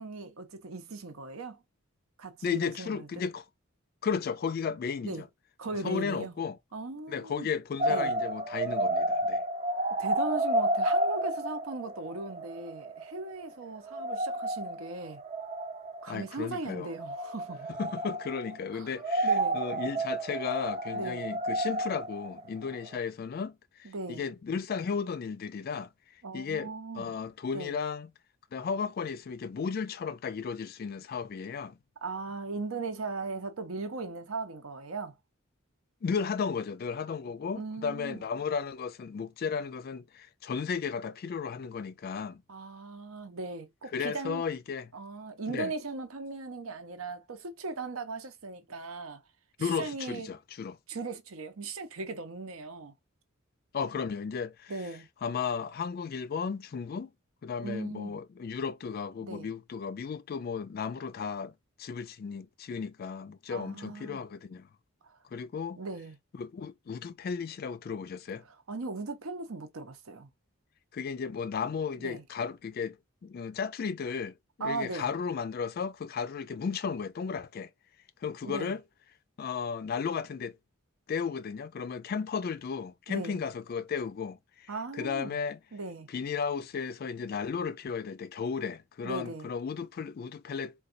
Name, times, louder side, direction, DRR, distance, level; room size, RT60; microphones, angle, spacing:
voice 1, 0.0-1.6 2.2-3.1 5.0-5.2 5.6-6.3 6.7-7.5 7.9-8.1 10.0-15.2 16.0-17.7 18.7-18.9 19.2-19.6 20.9-21.2 23.8-24.3 26.2-27.1 27.5-27.8 32.0-35.1 37.6-38.2 42.5-44.4 44.9-49.2 49.6-50.3 50.9-52.9 54.7-55.1 57.6-58.2 59.2-59.5 63.5-64.2 65.8-66.1 68.7-70.3 72.0-72.2 74.6-75.1 78.4-78.7 83.1-83.4 84.7-85.4 85.7-86.1 89.0-89.5, right 3 dB, 80° right, 0.8 m, -38 dB
voice 2, 2.4-3.4 4.0-5.3 5.8-6.6 7.1-9.4 16.1-16.9 17.7-25.9 26.3-28.1 28.5-31.8 36.0-42.4 43.9-44.9 45.5-45.7 49.6-50.8 53.7-54.8 55.2-57.1 57.4-61.5 61.8-64.7 65.3-65.8 66.4-68.4 70.9-73.0 73.2-77.7 78.2-78.8 79.4-80.6 81.1-85.6 86.1-90.7, left 6 dB, 45° left, 0.3 m, -34 dB
sound 1, 7.8-13.2 13.4-13.6 13.9-16.2 16.9-18.7 19.0-23.0, right 1 dB, 30° right, 0.4 m, -31 dB
3.9 x 2.3 x 2.5 m
head